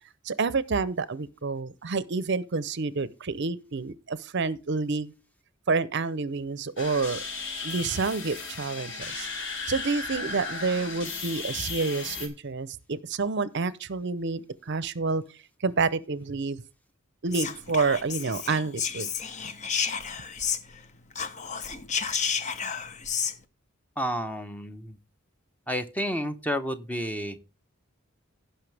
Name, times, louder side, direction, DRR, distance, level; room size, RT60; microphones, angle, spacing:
voice 1, 0.2-5.1 5.7-7.2 7.6-9.3 9.7-15.2 15.6-16.6 17.2-19.1, right 4 dB, 55° right, 0.6 m, -28 dB
sound 1, 6.8-12.3, left 4 dB, 60° left, 2.5 m, -35 dB
Whispering, 17.3-20.8 21.1-23.3, left 6 dB, 35° left, 0.9 m, -31 dB
voice 2, 24.0-25.0 25.7-27.4, equal, 5° left, 0.9 m, -30 dB
17.0 x 5.7 x 3.3 m
head